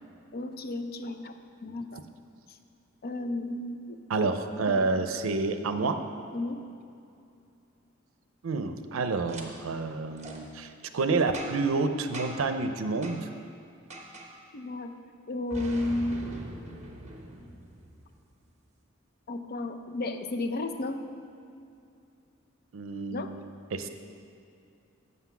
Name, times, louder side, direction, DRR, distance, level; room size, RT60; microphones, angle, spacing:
voice 1, 0.3-2.0 3.0-4.3 4.8-5.0 6.3-6.6 14.5-14.9 15.3-16.3 19.3-21.0 23.1-23.3, left 2 dB, 50° left, 8 dB, 0.5 m, -33 dB
voice 2, 4.1-6.0 8.4-13.3 22.7-23.4 23.7-23.9, right 3 dB, 90° right, 8 dB, 0.5 m, -29 dB
Boom, 9.3-9.4 10.2-10.4 11.3-11.7 12.1-12.5 13.0-13.2 13.9-14.3 15.5-18.2, right 2 dB, 35° right, 0.9 m, -42 dB
7.7 x 5.9 x 5.9 m, 2.5 s
head